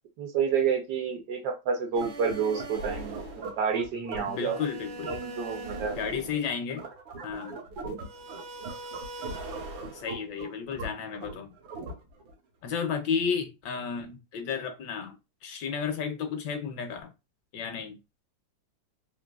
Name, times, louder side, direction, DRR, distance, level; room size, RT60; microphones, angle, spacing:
voice 1, 0.2-4.6 5.0-6.0, right 6 dB, 70° right, 1.1 m, -29 dB
sound 1, 1.9-12.3, right 3 dB, 85° right, 1.8 m, -39 dB
voice 2, 4.3-5.1 6.0-6.9 7.2-7.5 9.9-11.5 12.6-17.1 17.5-18.0, left 6 dB, 75° left, 1.1 m, -32 dB
3.8 x 2.6 x 2.3 m
omnidirectional pair, 2.1 m